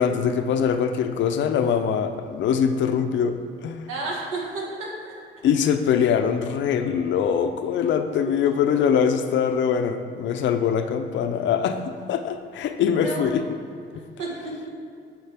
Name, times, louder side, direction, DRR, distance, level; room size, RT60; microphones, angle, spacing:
voice 1, 0.0-3.9 5.4-11.8 12.1-13.5, left 7 dB, 70° left, 8 dB, 0.5 m, -23 dB
voice 2, 3.9-5.1 8.4-8.5 12.8-13.3 14.2-14.7, right 3 dB, 80° right, -3 dB, 1.5 m, -32 dB
8.0 x 4.4 x 3.5 m, 2.3 s
cardioid pair, 90°, 20 cm